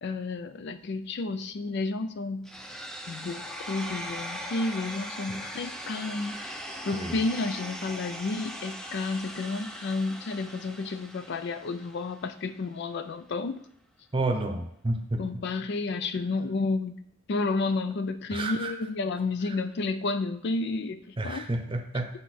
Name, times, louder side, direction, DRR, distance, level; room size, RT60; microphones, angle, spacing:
voice 1, 0.0-2.5 3.1-6.6 6.9-13.6 15.2-17.0 17.3-21.5, left 3 dB, 55° left, 11 dB, 0.4 m, -31 dB
sound 1, 2.5-12.4, equal, 5° left, 0.5 m, -40 dB
voice 2, 14.1-15.2 18.3-18.7 21.2-22.1, right 2 dB, 25° right, 5 dB, 0.8 m, -30 dB
6.4 x 5.5 x 4.2 m, 0.72 s
head